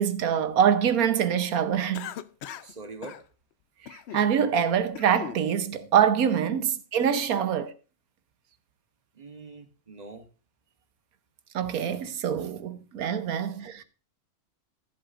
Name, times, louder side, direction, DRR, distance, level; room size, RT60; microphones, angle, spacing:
voice 1, 0.0-2.1 3.9-7.7 11.5-13.8, right 8 dB, 80° right, 1.3 m, -25 dB
Cough, 1.9-2.7 3.0-3.2 3.9-4.3 4.7-5.4, left 10 dB, 65° left, 0.7 m, -39 dB
voice 2, 2.6-3.2 7.3-7.4 9.1-10.3, right 3 dB, 30° right, 1.1 m, -43 dB
14.5 x 7.8 x 2.5 m
omnidirectional pair, 1.5 m